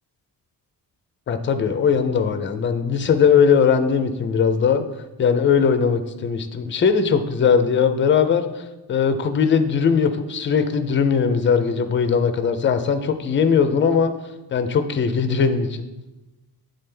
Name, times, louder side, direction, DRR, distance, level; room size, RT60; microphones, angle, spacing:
voice 1, 1.3-4.8 5.2-14.1 14.5-15.9, left 6 dB, 30° left, 9 dB, 0.4 m, -19 dB
9.3 x 3.8 x 3.3 m, 1.0 s
wide cardioid pair, 170°, 39 cm